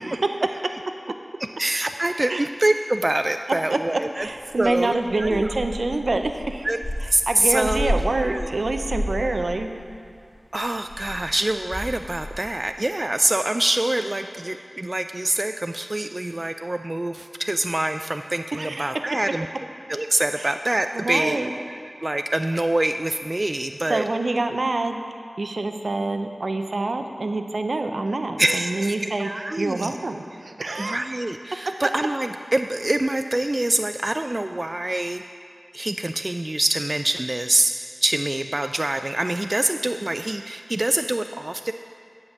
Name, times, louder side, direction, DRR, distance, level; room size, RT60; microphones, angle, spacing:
voice 1, 1.6-4.3 4.6-5.5 6.6-6.8 7.1-7.9 8.2-8.5 10.5-19.5 19.9-24.1 28.4-30.0 30.8-35.2 35.7-37.7 38.0-41.7, right 1 dB, 35° right, 8 dB, 0.3 m, -25 dB
sound 1, 4.2-10.4 10.6-12.7, equal, 65° left, 2.5 m, -32 dB
voice 2, 4.2-6.7 7.3-9.7 18.5-18.9 20.4-20.5 20.9-21.5 23.9-25.0 25.4-29.3 29.6-31.0 31.7-31.8, right 2 dB, 75° right, 6 dB, 0.6 m, -26 dB
9.7 x 5.2 x 7.8 m, 2.3 s
wide cardioid pair, 45°, 0 cm